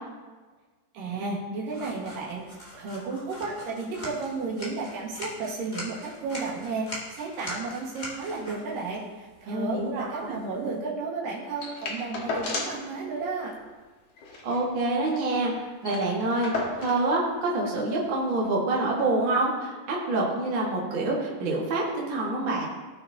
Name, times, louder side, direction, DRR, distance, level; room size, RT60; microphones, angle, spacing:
voice 1, 0.9-2.4 2.7-13.5, right 3 dB, 85° right, -4 dB, 3.4 m, -33 dB
sound 1, 1.7-10.8, equal, 15° left, 1.8 m, -42 dB
voice 2, 9.5-10.4 14.4-16.5 16.8-22.7, right 2 dB, 40° right, -4 dB, 2.2 m, -27 dB
sound 2, 11.6-12.9 13.2-13.3 13.6-13.8 14.2-15.3 15.5-15.6 15.8-17.1 18.0-18.1, left 3 dB, 55° left, 2.3 m, -34 dB
17.5 x 6.7 x 2.8 m, 1.3 s
omnidirectional pair, 3.8 m